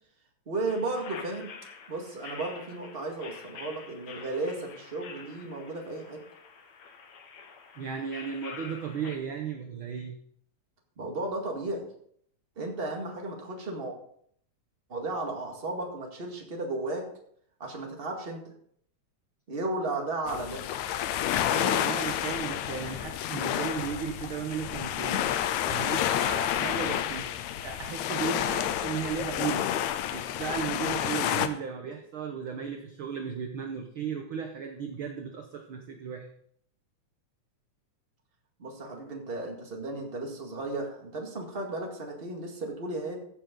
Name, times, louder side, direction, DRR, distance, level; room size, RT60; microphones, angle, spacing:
voice 1, 0.4-1.5 1.9-6.2 11.0-11.9 12.5-13.9 14.9-17.1 17.6-18.4 19.5-20.6 31.8-31.9 38.6-43.2, right 2 dB, 25° right, 1 dB, 1.7 m, -34 dB
sound 1, 0.6-9.2, left 5 dB, 65° left, 2.5 m, -47 dB
voice 2, 7.8-10.1 21.5-25.3 25.6-27.3 27.6-29.7 30.1-36.3, right 7 dB, 60° right, 4 dB, 1.4 m, -35 dB
sound 2, 20.3-31.5, left 11 dB, 80° left, 2.0 m, -30 dB
15.0 x 7.3 x 3.9 m, 0.65 s
omnidirectional pair, 3.4 m